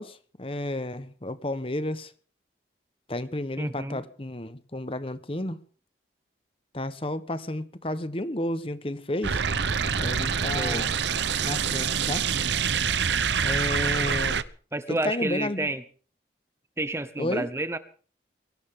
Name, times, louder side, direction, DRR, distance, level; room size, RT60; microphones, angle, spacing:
voice 1, 0.0-2.1 3.1-5.6 6.7-9.4 9.9-10.9 11.4-12.7 13.4-14.4 14.9-15.7 17.2-17.5, left 1 dB, 30° left, 1.1 m, -32 dB
voice 2, 3.6-4.0 10.5-10.9 14.7-15.8 16.8-17.8, right 2 dB, 15° right, 0.8 m, -30 dB
sound 1, 9.2-14.4, right 6 dB, 75° right, 0.8 m, -26 dB
22.5 x 17.5 x 3.7 m
head